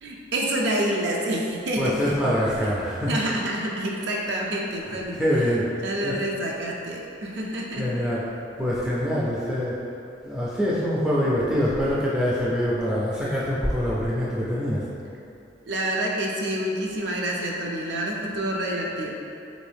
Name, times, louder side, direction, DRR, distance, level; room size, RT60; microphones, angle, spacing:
voice 1, 0.0-2.1 3.1-5.2 5.8-7.8 15.6-19.1, right 1 dB, 65° right, -2 dB, 0.5 m, -27 dB
voice 2, 1.7-3.2 4.2-4.5 4.8-6.2 7.5-8.3 8.6-9.8 10.2-14.9, equal, 5° right, -8 dB, 0.4 m, -25 dB
3.4 x 2.6 x 3.3 m, 2.6 s
head